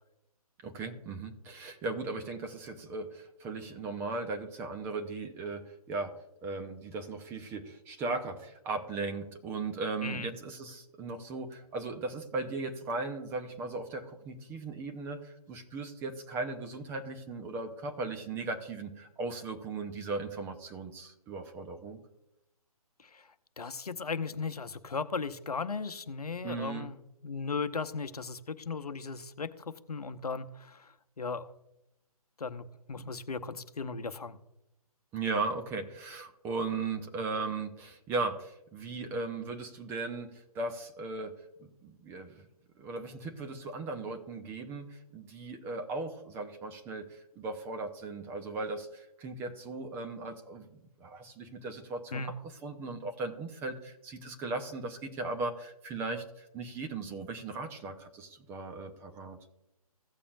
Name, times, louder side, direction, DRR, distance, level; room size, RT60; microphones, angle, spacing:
voice 1, 0.6-6.1 6.4-22.0 26.4-26.9 35.1-41.3 41.6-42.5 42.8-59.4, right 3 dB, 10° right, 5 dB, 0.6 m, -37 dB
voice 2, 23.6-30.9 31.2-31.5 32.4-34.4 52.1-52.3, left 4 dB, 75° left, 11 dB, 0.8 m, -37 dB
16.0 x 6.8 x 2.5 m, 0.86 s
figure-of-eight pair, 140°, 20 cm